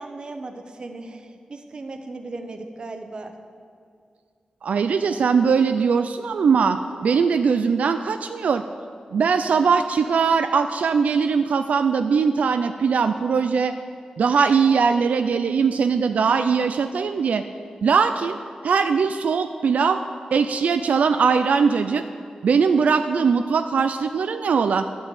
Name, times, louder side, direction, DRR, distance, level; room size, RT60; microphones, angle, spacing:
voice 1, 0.0-3.3, right 2 dB, 40° right, 6 dB, 0.8 m, -37 dB
voice 2, 4.6-8.6 9.1-13.7 14.2-17.4 17.8-18.4 18.6-20.0 20.3-22.0 22.4-24.9, right 5 dB, 80° right, 8 dB, 0.3 m, -20 dB
11.0 x 6.0 x 8.1 m, 2.3 s
wide cardioid pair, 170°, 2 cm